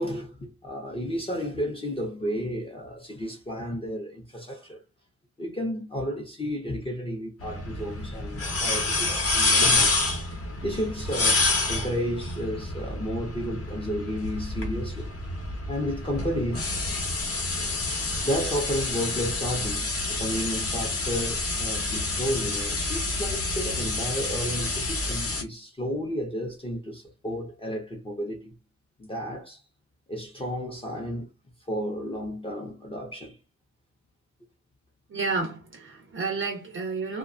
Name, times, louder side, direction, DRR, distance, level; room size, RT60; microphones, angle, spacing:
voice 1, 0.0-4.8 5.4-10.1 10.6-11.4 11.7-15.1 15.7-16.7 18.2-28.5 29.0-29.6 30.1-31.3 31.7-33.4, equal, 20° left, 0.5 m, -32 dB
sound 1, 7.4-25.4, left 3 dB, 50° left, 0.8 m, -28 dB
voice 2, 35.1-37.2, right 4 dB, 45° right, 0.4 m, -30 dB
2.7 x 2.1 x 2.4 m
wide cardioid pair, 165°, 29 cm